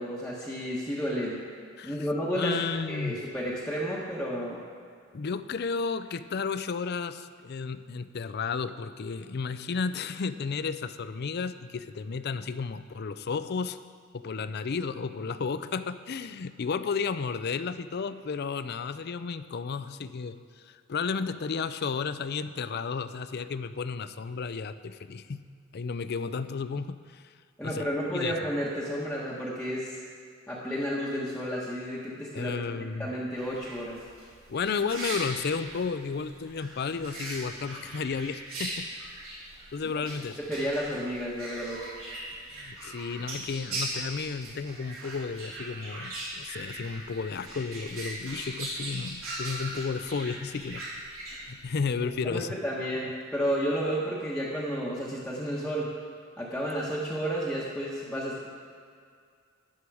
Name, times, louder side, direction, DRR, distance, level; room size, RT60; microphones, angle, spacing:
voice 1, 0.0-1.4 1.8-2.6 2.9-4.6 27.6-30.0 30.5-32.6 33.0-34.0 37.8-37.9 40.4-41.8 52.0-55.9 56.4-58.5, equal, 5° left, -7 dB, 1.2 m, -32 dB
voice 2, 2.3-3.2 5.1-13.8 14.1-20.4 20.6-25.4 25.7-27.3 27.6-27.8 28.1-28.3 32.3-33.1 34.5-38.9 39.7-40.4 42.5-50.8 51.5-52.5, left 5 dB, 50° left, 12 dB, 0.4 m, -33 dB
sound 1, 33.4-52.1, right 1 dB, 90° right, 3.7 m, -40 dB
13.0 x 10.0 x 4.8 m, 2.2 s
head